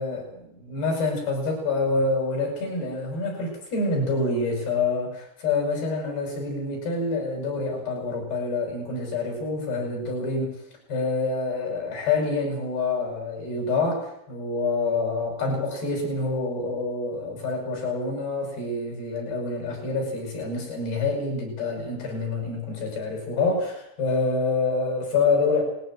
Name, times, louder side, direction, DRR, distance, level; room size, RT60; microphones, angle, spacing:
voice 1, 0.0-10.6 10.9-25.6, left 3 dB, 85° left, 1 dB, 9.8 m, -27 dB
19.5 x 17.0 x 9.3 m, 0.75 s
omnidirectional pair, 4.5 m